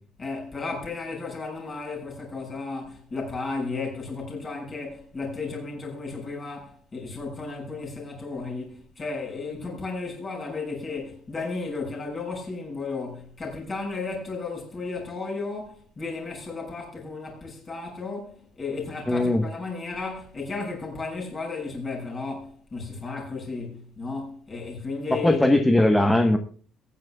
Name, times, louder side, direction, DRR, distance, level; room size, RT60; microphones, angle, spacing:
voice 1, 0.2-25.7, left 3 dB, 25° left, 7.0 m, -34 dB
voice 2, 19.1-19.4 25.2-26.4, left 1 dB, 5° left, 1.1 m, -19 dB
22.5 x 10.5 x 2.3 m
cardioid pair, 145°, 0 cm